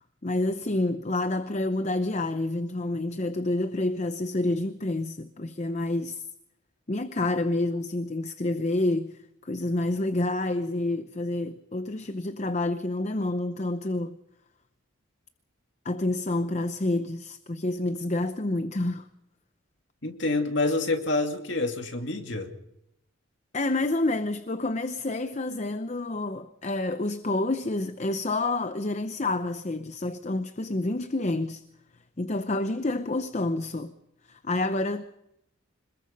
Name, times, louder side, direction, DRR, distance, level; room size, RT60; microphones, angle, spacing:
voice 1, 0.2-6.2 6.9-14.2 15.8-19.1 23.5-31.6 32.2-33.9 34.2-35.0, left 2 dB, 35° left, 0.7 m, -28 dB
voice 2, 20.0-22.5, left 2 dB, 60° left, 2.5 m, -27 dB
26.0 x 21.0 x 5.3 m
head